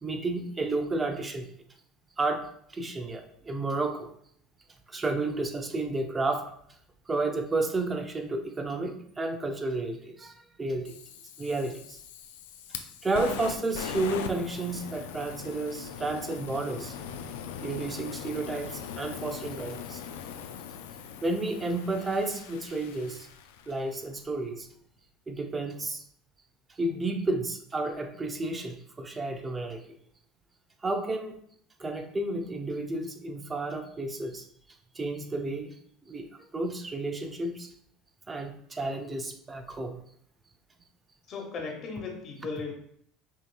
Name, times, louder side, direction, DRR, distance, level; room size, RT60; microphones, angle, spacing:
voice 1, 0.0-1.5 2.2-4.1 4.9-6.5 7.1-10.9 11.4-12.0 13.0-17.0 17.6-20.0 21.2-23.3 23.7-24.7 25.3-26.0 26.7-29.8 30.8-31.4 31.8-34.4 34.9-35.8 36.1-36.3 36.5-37.7 38.3-40.0, right 2 dB, 25° right, 5 dB, 0.7 m, -31 dB
Fire, 10.8-24.0, left 8 dB, 80° left, 0.3 m, -40 dB
voice 2, 41.3-42.7, left 4 dB, 45° left, 1 dB, 1.3 m, -36 dB
5.5 x 2.9 x 2.3 m, 0.67 s
hypercardioid pair, 80°, 0 cm